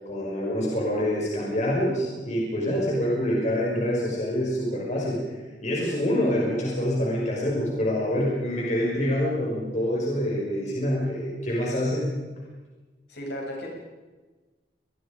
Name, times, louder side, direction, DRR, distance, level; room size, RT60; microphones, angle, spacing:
voice 1, 0.1-12.2, equal, 45° left, -4 dB, 5.8 m, -26 dB
voice 2, 13.1-13.8, equal, 65° left, -1 dB, 8.0 m, -35 dB
27.5 x 21.0 x 5.2 m, 1.3 s
head